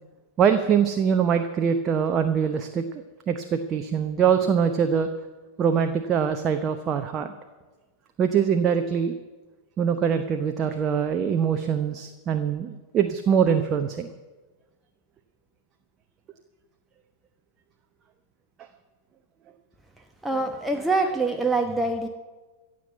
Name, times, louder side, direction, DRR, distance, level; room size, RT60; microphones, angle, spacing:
voice 1, 0.4-2.8 3.3-5.1 5.6-7.3 8.2-9.1 9.8-14.1, right 7 dB, 30° right, 7 dB, 0.9 m, -23 dB
voice 2, 20.2-22.1, right 3 dB, 5° right, 3 dB, 1.1 m, -24 dB
15.5 x 7.7 x 8.2 m, 1.3 s
figure-of-eight pair, 90°, 0 cm